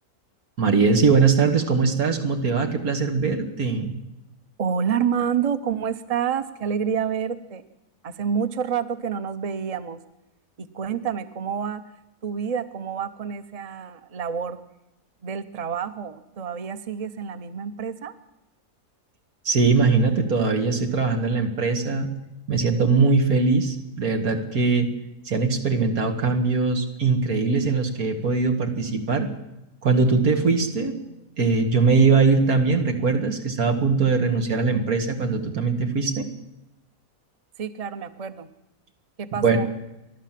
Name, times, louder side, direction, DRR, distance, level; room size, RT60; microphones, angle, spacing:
voice 1, 0.6-3.9 19.5-22.1 22.5-24.9 25.3-29.3 29.8-31.0 31.4-36.3 39.4-39.6, right 4 dB, 90° right, 4 dB, 2.5 m, -21 dB
voice 2, 4.6-7.6 8.0-10.0 10.6-11.8 12.2-14.6 15.2-18.1 37.6-38.5 39.2-39.7, right 7 dB, 30° right, 11 dB, 0.9 m, -28 dB
29.5 x 11.5 x 7.6 m, 0.92 s
omnidirectional pair, 1.5 m